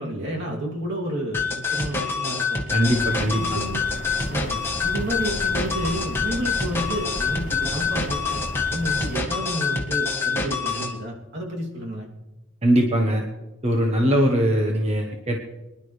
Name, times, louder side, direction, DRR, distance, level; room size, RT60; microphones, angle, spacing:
voice 1, 0.0-2.6 3.4-3.8 4.3-12.1, equal, 60° right, -2 dB, 3.0 m, -31 dB
sound 1, 1.3-10.9, left 4 dB, 10° left, 1.7 m, -26 dB
voice 2, 2.7-3.6 12.6-13.2 13.6-15.4, equal, 35° right, 1 dB, 1.3 m, -21 dB
sound 2, 2.8-9.2, left 1 dB, 40° left, 0.9 m, -35 dB
24.0 x 11.0 x 3.4 m, 1.0 s
head